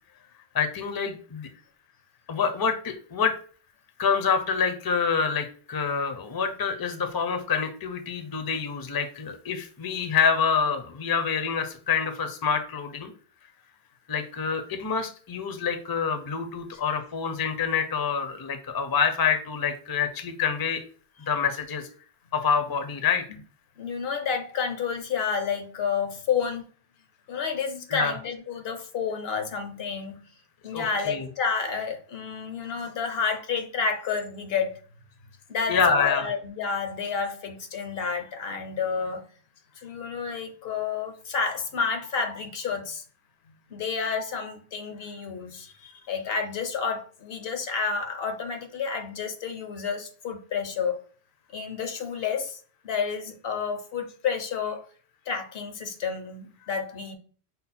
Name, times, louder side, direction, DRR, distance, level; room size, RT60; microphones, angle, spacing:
voice 1, 0.5-1.5 2.3-3.3 4.0-13.1 14.1-20.8 21.3-21.9 22.3-23.2 27.9-28.1 30.7-31.3 35.7-36.3, left 6 dB, 30° left, 0.5 m, -26 dB
voice 2, 23.8-26.6 27.3-30.2 30.6-34.8 35.5-39.2 39.8-43.0 43.7-51.0 51.5-54.8 55.3-57.1, left 6 dB, 70° left, 0.9 m, -30 dB
5.4 x 2.1 x 4.2 m
omnidirectional pair, 1.1 m